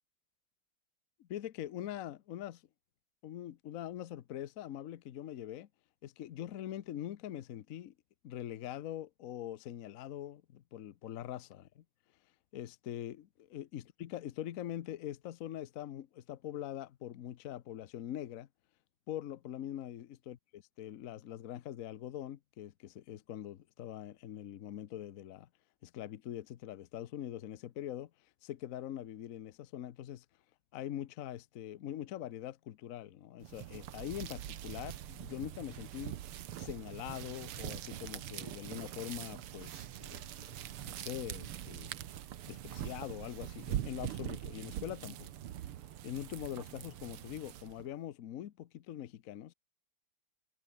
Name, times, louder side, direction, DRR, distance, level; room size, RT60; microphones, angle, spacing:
voice 1, 1.2-2.6 3.2-5.7 6.0-7.9 8.2-11.8 12.5-18.5 19.1-25.5 25.8-28.1 28.4-30.2 30.7-36.1 36.6-41.9 42.5-45.3 46.0-49.5, left 12 dB, 60° left, 0.9 m, -43 dB
sound 1, 33.4-47.9, right 11 dB, 90° right, 2.0 m, -43 dB
omnidirectional pair, 2.4 m